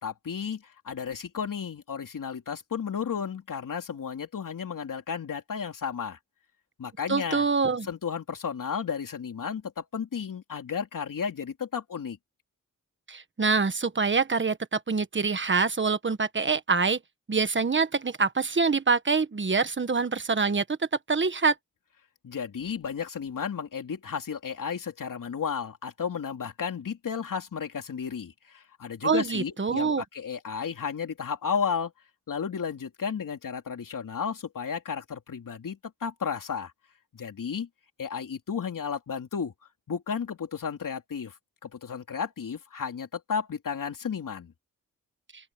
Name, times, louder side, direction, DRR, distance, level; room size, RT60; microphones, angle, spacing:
voice 1, 0.0-6.2 6.8-7.5 7.8-12.2 22.2-31.9 32.3-36.7 37.1-37.7 38.0-39.5 39.9-41.3 41.6-44.5, left 6 dB, 75° left, 3.2 m, -33 dB
voice 2, 7.1-7.9 13.1-17.0 17.3-20.6 21.1-21.5 29.0-30.0, right 4 dB, 35° right, 1.4 m, -25 dB
open air
wide cardioid pair, 90°, 33 cm